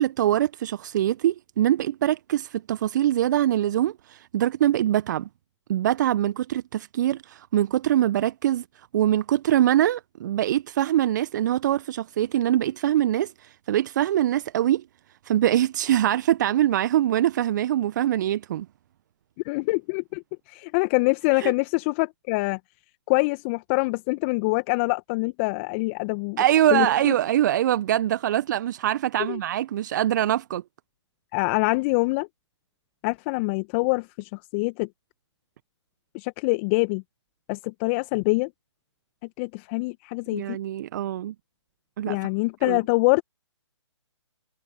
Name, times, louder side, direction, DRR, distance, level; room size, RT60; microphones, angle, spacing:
voice 1, 0.0-5.3 5.7-14.8 15.2-18.7 21.3-21.5 26.4-30.6 40.3-41.3 42.0-42.2 42.6-42.8, right 12 dB, 40° right, 1.0 m, -23 dB
voice 2, 19.4-20.2 20.5-22.6 23.1-26.4 26.7-27.1 29.3-29.4 31.3-32.3 33.0-34.9 36.1-37.0 37.5-38.5 39.4-40.6 42.1-43.2, left 27 dB, 25° left, 1.3 m, -25 dB
figure-of-eight pair, 135°, 15 cm